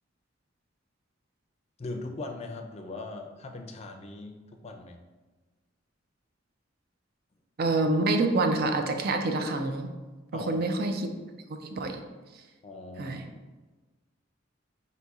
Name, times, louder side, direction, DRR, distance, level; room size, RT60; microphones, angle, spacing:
voice 1, 1.8-5.0 10.3-10.6 12.6-13.2, left 2 dB, 35° left, 4 dB, 0.5 m, -40 dB
voice 2, 7.6-9.9 10.3-11.1 11.5-12.0 13.0-13.2, right 2 dB, 50° right, 5 dB, 0.5 m, -27 dB
4.0 x 2.8 x 4.6 m, 1.3 s
head